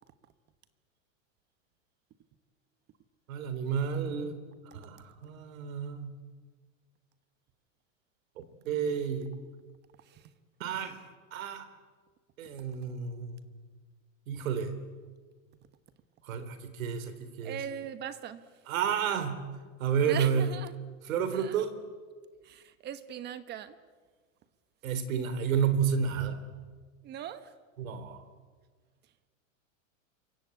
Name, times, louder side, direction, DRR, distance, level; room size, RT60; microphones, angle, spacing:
voice 1, 3.3-4.3 4.7-6.2 8.7-9.3 10.6-11.0 11.3-11.7 12.4-13.5 14.3-14.7 16.3-17.6 18.7-19.4 19.8-20.5 21.1-21.8 24.8-26.4 27.8-28.2, right 7 dB, 80° right, 3.8 m, -30 dB
voice 2, 10.0-10.3 17.4-18.5 20.0-20.8 21.3-21.6 22.4-23.8 27.0-27.5, right 9 dB, 25° right, 1.1 m, -40 dB
28.0 x 24.0 x 8.6 m
supercardioid pair, 155°, 40 cm